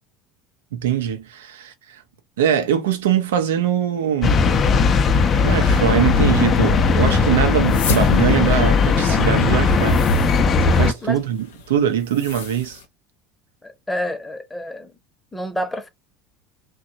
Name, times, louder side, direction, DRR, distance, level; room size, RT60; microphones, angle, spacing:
voice 1, 0.7-2.0 2.4-4.4 5.4-10.0 10.6-12.8, right 9 dB, 75° right, 0.6 m, -22 dB
sound 1, 4.2-10.9, left 4 dB, 35° left, 0.5 m, -17 dB
sound 2, 7.5-12.8, left 4 dB, 75° left, 0.7 m, -33 dB
voice 2, 13.6-15.0 15.3-15.9, equal, 10° left, 0.8 m, -28 dB
2.9 x 2.2 x 2.5 m
hypercardioid pair, 70°, 0 cm